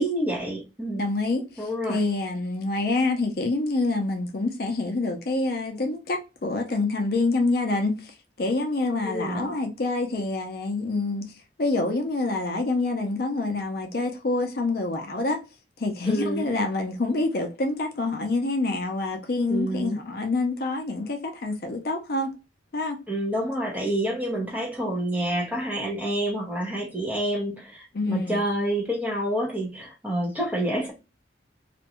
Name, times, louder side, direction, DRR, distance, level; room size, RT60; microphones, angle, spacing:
voice 1, 0.0-1.0 1.6-2.0 9.0-9.5 16.0-16.5 19.5-20.0 23.1-30.9, right 1 dB, 10° right, 0.7 m, -28 dB
voice 2, 0.9-11.3 11.6-15.4 15.8-22.3 22.7-23.0 27.9-28.4, left 2 dB, 55° left, 0.5 m, -27 dB
2.4 x 2.2 x 2.8 m
head